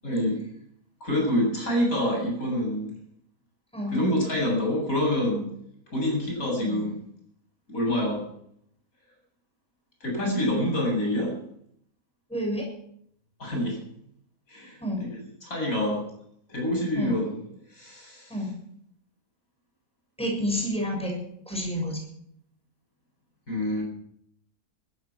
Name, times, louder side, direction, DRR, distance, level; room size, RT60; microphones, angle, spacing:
voice 1, 0.0-0.4 1.0-2.9 3.9-5.5 5.9-7.0 7.7-8.2 10.0-11.3 13.4-13.8 14.5-15.1 15.4-16.0 16.5-17.4 17.7-18.3 23.5-23.8, left 1 dB, 70° left, -1 dB, 8.7 m, -26 dB
voice 2, 12.3-12.7 14.8-15.0 16.9-17.1 18.3-18.5 20.2-21.1 21.5-22.0, equal, 5° left, -1 dB, 6.7 m, -29 dB
16.0 x 14.0 x 6.3 m, 0.71 s
omnidirectional pair, 1.5 m